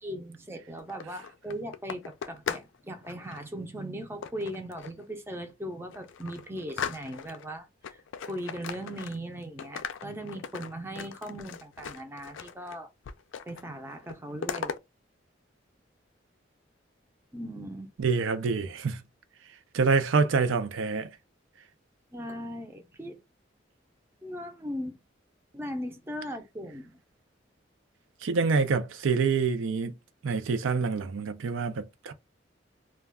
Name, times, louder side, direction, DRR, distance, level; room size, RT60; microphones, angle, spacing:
voice 1, 0.0-12.9 13.5-14.8 17.3-17.9 22.1-23.2 24.2-25.0 25.5-27.0, equal, 10° right, 0.4 m, -38 dB
sound 1, 0.8-2.7 3.0-3.4 4.2-5.0 5.5-5.6 5.9-7.5 7.8-9.3 9.6-12.8 13.0-13.7 13.9-14.8, left 7 dB, 80° left, 0.3 m, -38 dB
voice 2, 18.0-19.0 19.7-21.1 28.2-29.9 30.2-32.1, right 4 dB, 85° right, 0.4 m, -26 dB
2.3 x 2.2 x 3.4 m
head